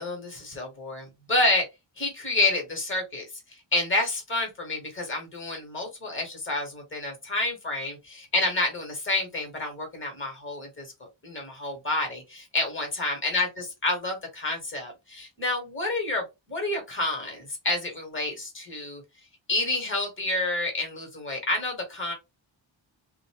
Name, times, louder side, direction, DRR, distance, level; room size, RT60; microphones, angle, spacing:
voice 1, 0.0-1.6 2.0-3.3 3.7-10.9 11.2-19.0 19.5-22.1, left 2 dB, 25° left, 1.1 m, -29 dB
2.6 x 2.1 x 2.8 m
wide cardioid pair, 160°, 48 cm